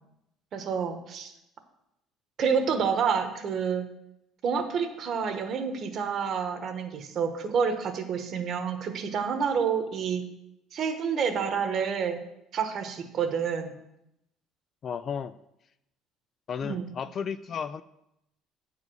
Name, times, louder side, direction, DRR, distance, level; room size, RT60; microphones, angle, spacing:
voice 1, 0.5-1.3 2.4-3.8 4.4-10.2 10.7-12.2 12.5-13.7 16.6-16.9, right 6 dB, 40° right, 7 dB, 1.2 m, -28 dB
voice 2, 14.8-15.4 16.5-17.8, left 7 dB, 35° left, 14 dB, 0.3 m, -33 dB
9.5 x 4.9 x 7.8 m, 0.83 s
cardioid pair, 160°, 0 cm